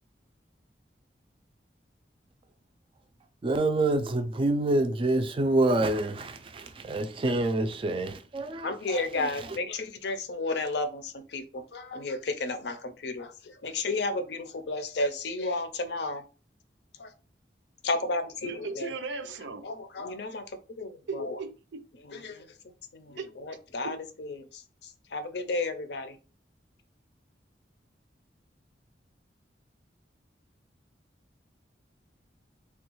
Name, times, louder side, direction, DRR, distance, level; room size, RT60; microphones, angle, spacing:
voice 1, 3.4-9.6, right 2 dB, 30° right, 0.3 m, -27 dB
voice 2, 8.6-12.8 13.0-13.3 13.6-16.2 17.0-17.1 17.8-18.9 19.6-20.4 20.8-21.4 22.1-22.4 22.9-24.3 25.1-26.1, left 2 dB, 70° left, 0.5 m, -32 dB
voice 3, 18.4-19.7 21.1-21.8 23.2-23.3 23.8-24.0, right 4 dB, 90° right, 0.5 m, -37 dB
3.4 x 2.3 x 3.0 m
head